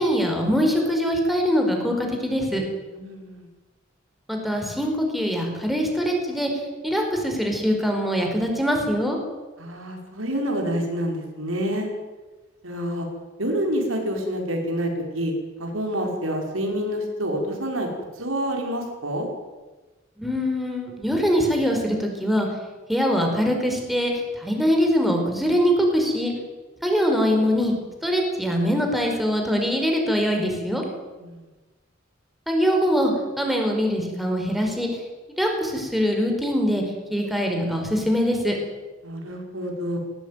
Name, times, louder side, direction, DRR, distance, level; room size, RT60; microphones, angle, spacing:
voice 1, 0.0-2.6 4.3-6.5 6.8-9.2 20.2-22.5 22.9-26.3 26.8-27.7 28.0-30.8 32.5-34.9 35.4-36.8 37.1-38.6, equal, ahead, 1 dB, 4.9 m, -23 dB
voice 2, 2.9-3.5 9.6-11.9 12.6-13.1 13.4-15.3 15.6-17.9 18.2-19.3 31.1-31.5 39.0-40.0, equal, 90° right, 2 dB, 5.6 m, -27 dB
19.5 x 19.5 x 9.4 m, 1.2 s
head